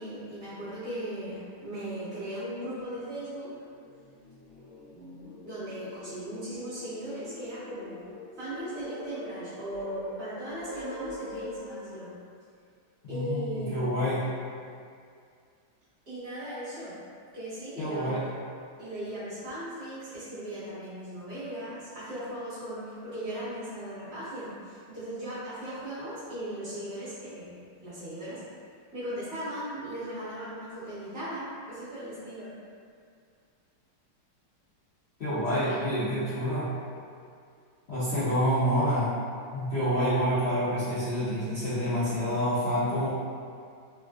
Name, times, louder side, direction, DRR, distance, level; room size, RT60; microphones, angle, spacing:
voice 1, 0.0-3.5 5.4-8.1 8.4-12.1 13.1-14.2 16.1-16.9 17.3-18.4 18.8-28.4 28.9-32.5 35.5-35.8, right 1 dB, 40° right, -14 dB, 1.6 m, -38 dB
sound 1, 3.0-3.1 3.5-11.6, left 1 dB, 50° left, 1.0 m, -44 dB
voice 2, 13.1-14.3 17.8-18.3 35.2-36.7 37.9-39.1 39.5-43.1, equal, 80° left, -15 dB, 0.6 m, -27 dB
3.5 x 2.3 x 2.4 m, 2.3 s
omnidirectional pair, 2.3 m